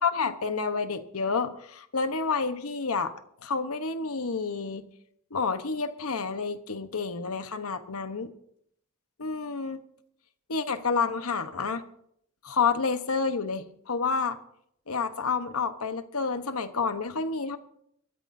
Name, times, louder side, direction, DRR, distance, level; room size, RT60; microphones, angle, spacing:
voice 1, 0.0-3.1 3.4-4.8 5.3-8.3 9.2-9.8 10.5-11.8 12.4-14.4 14.9-17.6, left 4 dB, 85° left, 10 dB, 1.1 m, -29 dB
23.0 x 13.5 x 2.7 m, 0.69 s
head